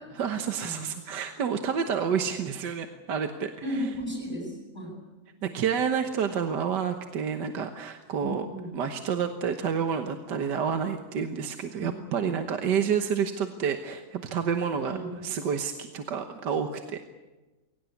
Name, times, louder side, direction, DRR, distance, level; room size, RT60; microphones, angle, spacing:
voice 1, 0.2-3.8 5.4-8.5 8.7-15.0 15.2-17.1, right 7 dB, 65° right, 6 dB, 1.8 m, -29 dB
voice 2, 3.6-5.0 8.2-8.7 11.8-11.9 14.9-15.1, equal, 10° right, -2 dB, 8.0 m, -34 dB
23.0 x 18.0 x 9.7 m, 1.2 s
omnidirectional pair, 2.0 m